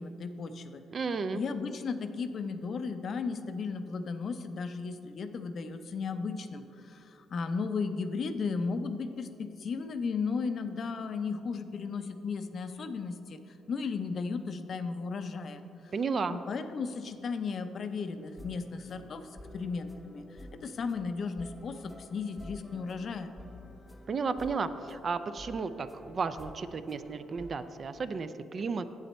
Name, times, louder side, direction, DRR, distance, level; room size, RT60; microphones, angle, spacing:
voice 1, 0.0-0.8 1.3-15.9 16.3-23.3, left 4 dB, 55° left, 9 dB, 0.5 m, -35 dB
voice 2, 0.9-1.4 15.9-16.4 24.1-28.9, right 4 dB, 45° right, 11 dB, 0.4 m, -33 dB
sound 1, 18.2-27.8, left 1 dB, 10° left, 0.7 m, -50 dB
8.0 x 7.6 x 4.3 m, 2.9 s
cardioid pair, 90°, 0 cm